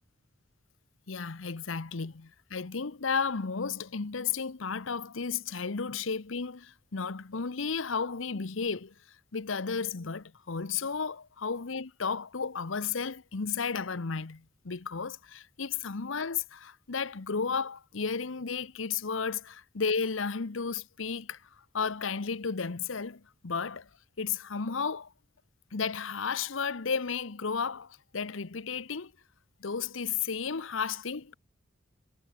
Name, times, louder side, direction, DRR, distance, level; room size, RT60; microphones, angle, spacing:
voice 1, 1.1-8.9 9.3-21.4 21.7-23.9 24.2-25.1 25.7-29.1 29.6-31.3, left 5 dB, 75° left, 0.9 m, -33 dB
head